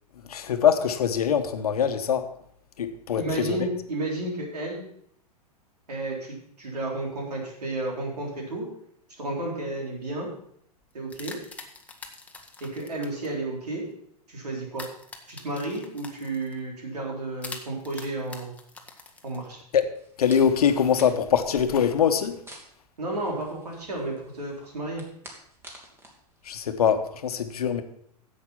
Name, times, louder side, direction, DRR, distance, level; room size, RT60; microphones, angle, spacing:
voice 1, 0.2-2.3 2.8-3.7 19.7-19.8 20.2-22.4 26.4-27.8, left 8 dB, 70° left, 8 dB, 1.1 m, -23 dB
voice 2, 3.2-4.9 5.9-8.7 9.2-10.3 10.9-11.4 12.6-13.8 14.3-14.9 15.3-18.5 19.2-19.6 23.0-25.0, right 2 dB, 75° right, -1 dB, 3.9 m, -32 dB
sound 1, 10.8-13.3 14.8-16.6 17.4-19.8, left 3 dB, 5° left, 1.2 m, -44 dB
sound 2, 19.9-27.3, right 1 dB, 10° right, 2.1 m, -50 dB
10.5 x 7.8 x 5.7 m, 0.68 s
figure-of-eight pair, 105°, 20 cm